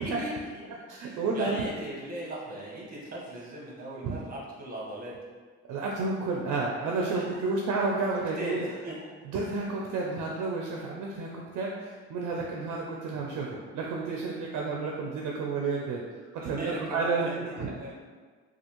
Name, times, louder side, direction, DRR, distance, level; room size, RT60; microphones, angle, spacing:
voice 1, 0.0-5.2 7.1-7.4 8.4-9.1 16.4-17.9, right 1 dB, 30° right, -4 dB, 1.1 m, -39 dB
voice 2, 0.9-1.6 4.0-4.2 5.7-8.6 9.3-16.0 16.3-17.7, right 3 dB, 80° right, -1 dB, 0.5 m, -31 dB
3.3 x 2.4 x 2.9 m, 1.5 s
cardioid pair, 90°, 30 cm